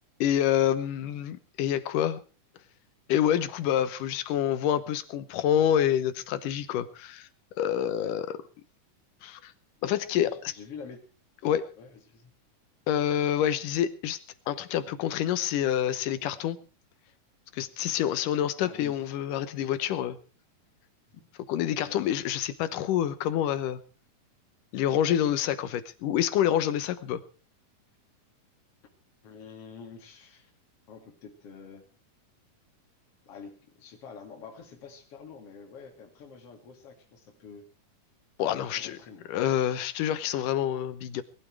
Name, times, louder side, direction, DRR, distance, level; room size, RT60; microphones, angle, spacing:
voice 1, 0.2-2.2 3.1-7.3 7.6-8.4 9.2-9.5 9.8-10.3 11.4-11.7 12.9-14.2 14.5-16.6 17.5-20.2 21.5-23.8 24.7-27.2 38.4-39.0 39.3-41.2, left 10 dB, 80° left, 13 dB, 2.6 m, -27 dB
voice 2, 10.2-11.0 11.8-12.3 18.6-19.0 21.1-21.2 21.8-22.0 29.2-30.5 30.9-31.8 33.3-37.7 38.6-39.3, left 5 dB, 45° left, 1 dB, 3.5 m, -46 dB
20.5 x 12.0 x 4.7 m, 0.35 s
omnidirectional pair, 3.8 m